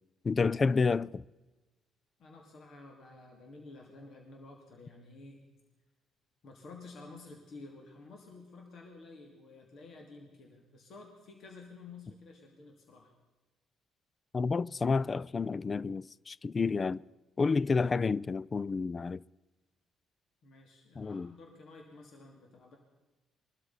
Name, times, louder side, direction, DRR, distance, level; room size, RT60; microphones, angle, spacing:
voice 1, 0.2-1.2 14.3-17.0 17.4-19.2 21.0-21.3, left 4 dB, 35° left, 0.4 m, -30 dB
voice 2, 2.2-5.5 6.4-13.1 20.4-22.8, left 3 dB, 60° left, 2.5 m, -51 dB
22.0 x 12.5 x 4.1 m
hypercardioid pair, 50°, 0 cm